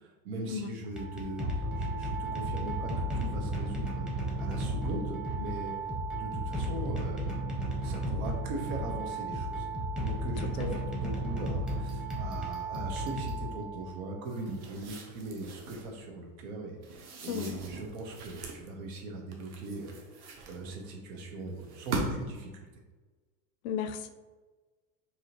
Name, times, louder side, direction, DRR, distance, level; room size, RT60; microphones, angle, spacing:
voice 1, 0.0-5.7 6.1-9.7 10.0-22.7, right 2 dB, 80° right, 1 dB, 1.1 m, -40 dB
sound 1, 0.8-14.0, right 1 dB, ahead, 0.7 m, -34 dB
sound 2, 14.3-15.9 16.8-18.7 19.3-20.9 21.6-22.4, right 3 dB, 40° right, 0.8 m, -40 dB
voice 2, 17.3-17.6 23.6-24.1, left 8 dB, 70° left, 9 dB, 0.5 m, -34 dB
4.7 x 2.8 x 2.9 m, 1.3 s
supercardioid pair, 140°, 42 cm